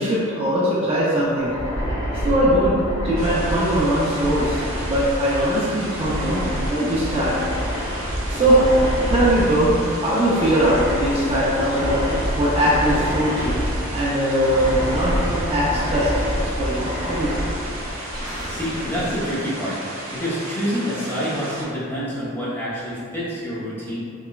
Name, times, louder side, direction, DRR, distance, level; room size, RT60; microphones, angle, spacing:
voice 1, 0.0-1.5 2.1-2.8 3.0-6.4 6.7-7.4 8.3-8.7 9.1-13.6 13.9-17.3, right 1 dB, 30° right, -8 dB, 0.3 m, -21 dB
sound 1, 1.4-20.2, equal, 60° left, 1.0 m, -27 dB
sound 2, 3.2-21.6, right 1 dB, 75° right, 0.6 m, -35 dB
voice 2, 18.5-19.8 20.1-24.0, equal, 10° left, -10 dB, 0.6 m, -27 dB
2.9 x 2.1 x 2.2 m, 2.3 s
head